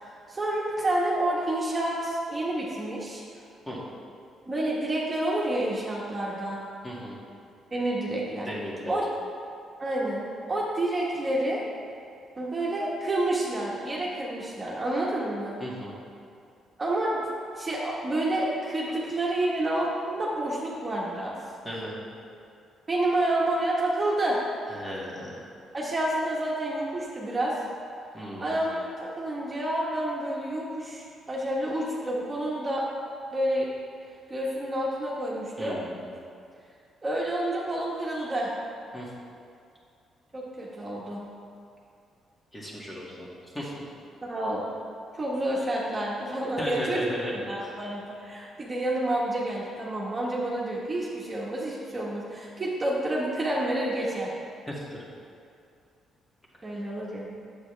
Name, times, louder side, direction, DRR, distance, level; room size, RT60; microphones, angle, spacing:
voice 1, 0.0-3.2 4.4-6.6 7.7-8.5 8.9-9.0 9.8-11.6 12.4-15.6 16.8-17.3 17.5-21.3 22.9-24.4 25.7-27.5 28.4-32.8 33.3-33.7 34.3-35.7 37.0-38.5 40.3-41.2 44.3-44.7 45.2-47.0 47.5-54.3 56.6-57.3, right 1 dB, 25° right, -5 dB, 1.4 m, -29 dB
voice 2, 6.8-7.2 8.5-8.9 15.6-16.0 21.6-22.0 24.7-25.5 28.1-28.6 35.6-36.1 38.9-39.1 42.5-43.3 43.5-43.7 46.6-47.7 54.7-55.0, equal, 15° left, -6 dB, 2.2 m, -35 dB
9.0 x 7.5 x 3.4 m, 2.5 s
cardioid pair, 90°, 0 cm